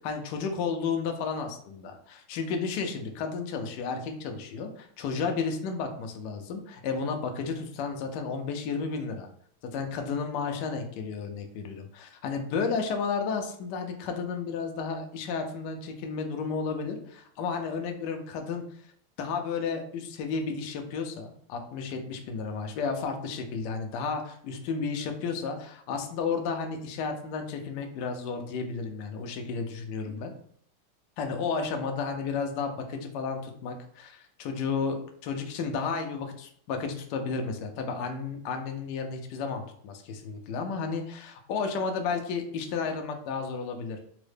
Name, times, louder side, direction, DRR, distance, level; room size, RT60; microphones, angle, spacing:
voice 1, 0.0-9.3 9.6-18.6 19.2-30.3 31.2-44.0, left 5 dB, 75° left, 4 dB, 1.0 m, -32 dB
3.7 x 2.1 x 3.2 m, 0.64 s
omnidirectional pair, 2.3 m